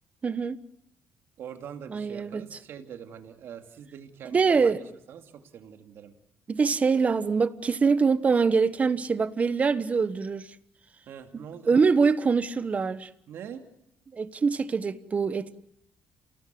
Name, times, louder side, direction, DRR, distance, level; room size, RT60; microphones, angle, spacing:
voice 1, 0.2-0.6 1.9-2.4 4.3-4.8 6.5-10.5 11.3-13.1 14.1-15.5, right 5 dB, 35° right, 1.2 m, -24 dB
voice 2, 1.4-6.1 11.1-11.9 13.3-13.6, right 8 dB, 70° right, 2.6 m, -43 dB
28.5 x 18.5 x 7.7 m
cardioid pair, 100°, 4 cm